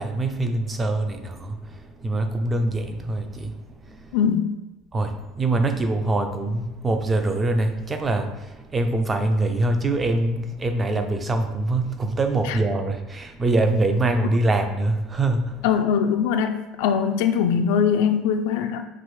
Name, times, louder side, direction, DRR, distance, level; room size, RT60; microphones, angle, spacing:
voice 1, 0.0-1.7 2.0-3.5 3.9-4.1 4.9-15.6, right 2 dB, 20° right, 7 dB, 0.4 m, -24 dB
voice 2, 4.1-4.5 12.4-12.6 15.6-18.8, left 7 dB, 85° left, 6 dB, 0.3 m, -22 dB
5.9 x 2.8 x 3.1 m, 1.0 s
cardioid pair, 150°, 0 cm